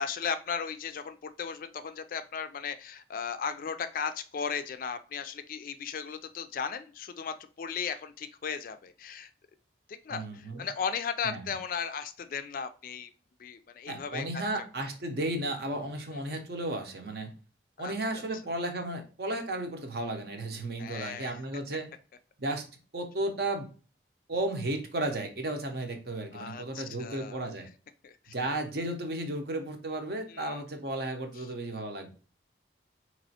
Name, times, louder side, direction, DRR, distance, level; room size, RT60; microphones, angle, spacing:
voice 1, 0.0-9.3 9.9-13.1 13.4-14.4 17.8-17.9 20.8-21.3 26.3-27.4 28.0-28.3 30.3-30.6, left 6 dB, 50° left, 10 dB, 0.3 m, -36 dB
voice 2, 10.1-10.7 11.2-11.4 13.9-17.3 17.8-21.9 22.4-22.7 22.9-23.7 24.3-27.7 28.3-32.1, right 1 dB, 55° right, 5 dB, 0.7 m, -34 dB
4.1 x 3.0 x 2.7 m, 0.36 s
head